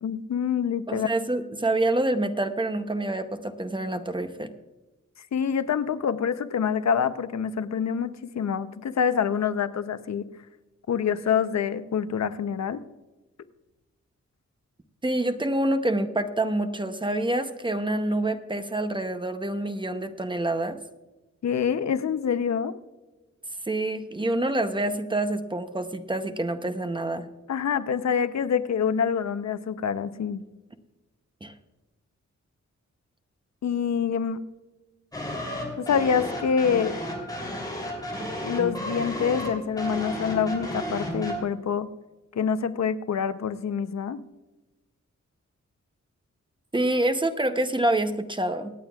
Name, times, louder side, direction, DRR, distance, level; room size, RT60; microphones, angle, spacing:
voice 1, 0.0-1.1 5.3-10.3 10.9-12.8 21.4-22.7 27.5-30.4 33.6-34.4 35.8-36.9 38.4-41.9 42.3-44.2, left 7 dB, 70° left, 12 dB, 0.7 m, -26 dB
voice 2, 0.9-4.5 15.0-20.8 23.6-27.3 31.4-31.5 46.7-48.7, right 1 dB, 15° right, 8 dB, 0.7 m, -27 dB
sound 1, 35.1-41.4, equal, 15° left, 3.2 m, -33 dB
25.0 x 9.0 x 2.4 m, 1.1 s
wide cardioid pair, 170°, 29 cm